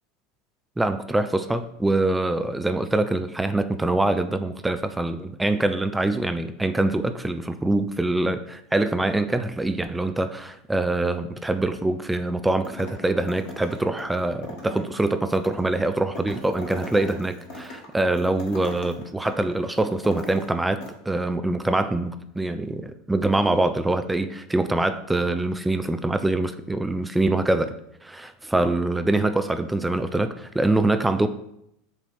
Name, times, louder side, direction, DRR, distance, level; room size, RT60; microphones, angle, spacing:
voice 1, 0.8-20.8 21.1-27.7 28.0-31.3, right 2 dB, 10° right, 9 dB, 0.5 m, -24 dB
Steel Balls Dropping Into Cardboard Box, 12.6-13.0 13.3-20.5 20.8-20.9, left 1 dB, 55° left, 2.0 m, -39 dB
7.9 x 3.0 x 6.0 m, 0.77 s
figure-of-eight pair, 75°, 0 cm